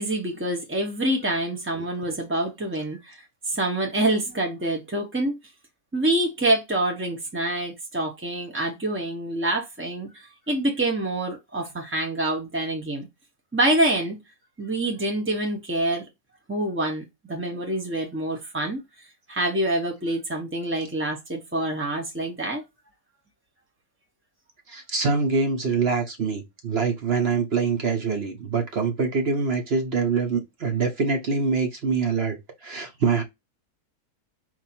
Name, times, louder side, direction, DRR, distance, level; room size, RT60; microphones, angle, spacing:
voice 1, 0.0-5.4 5.9-13.1 13.5-14.2 14.6-16.1 16.5-18.8 19.3-22.6, right 1 dB, 15° right, 0.4 m, -26 dB
voice 2, 24.7-32.4 32.6-33.2, right 4 dB, 45° right, 0.9 m, -24 dB
4.4 x 2.5 x 4.3 m
omnidirectional pair, 1.7 m